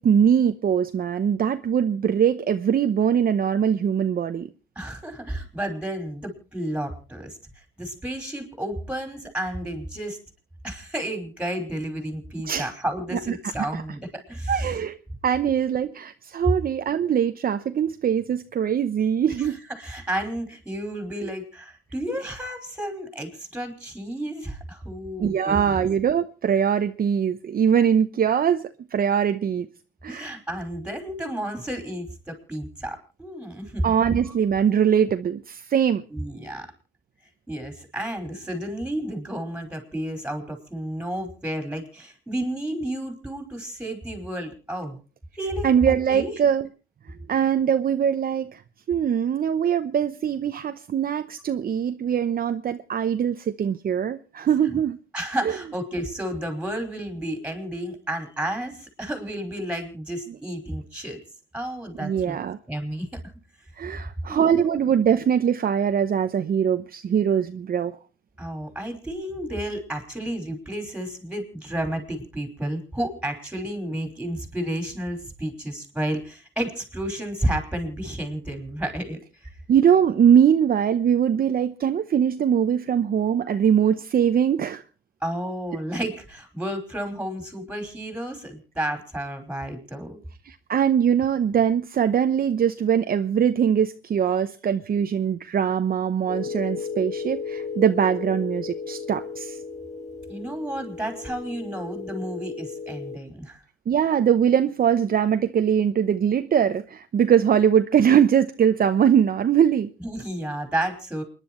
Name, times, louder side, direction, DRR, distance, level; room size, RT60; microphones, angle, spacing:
voice 1, 0.0-4.5 12.4-12.7 13.1-13.8 14.5-15.0 15.2-19.6 25.2-29.7 30.0-30.3 33.8-36.0 45.6-46.7 47.3-48.6 48.9-55.0 55.4-55.6 62.0-62.6 63.8-68.0 79.7-84.8 90.5-99.6 103.9-109.9, right 8 dB, 50° right, 0.8 m, -22 dB
voice 2, 4.8-7.4 7.8-10.2 10.6-14.7 19.4-19.5 19.8-25.8 30.1-33.9 34.2-34.3 36.1-36.7 37.5-45.0 45.4-46.3 54.7-54.8 55.1-61.2 61.5-62.4 62.7-63.2 64.3-64.8 68.4-79.5 85.2-90.2 100.3-103.6 110.0-111.2, right 1 dB, 5° right, 5.1 m, -31 dB
sound 1, 96.3-103.2, left 5 dB, 35° left, 1.6 m, -34 dB
28.5 x 11.0 x 3.1 m
cardioid pair, 90°, 20 cm